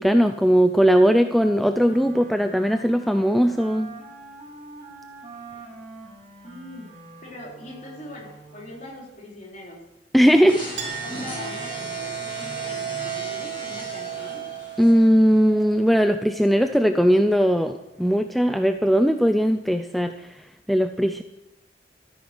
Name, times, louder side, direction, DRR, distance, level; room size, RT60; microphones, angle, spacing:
voice 1, 0.0-3.9 10.1-10.6 14.8-20.1 20.7-21.2, equal, ahead, 7 dB, 0.4 m, -19 dB
Wind instrument woodwind instrument, 1.4-8.9, right 3 dB, 35° right, 3.4 m, -44 dB
voice 2, 6.4-6.9 7.2-9.8 10.3-14.4, left 1 dB, 45° left, -3 dB, 4.4 m, -41 dB
sound 1, 10.5-15.5, equal, 30° left, 6.6 m, -36 dB
Chink clink, 10.8-17.8, right 11 dB, 85° right, 2.2 m, -36 dB
13.5 x 9.6 x 6.2 m, 0.90 s
head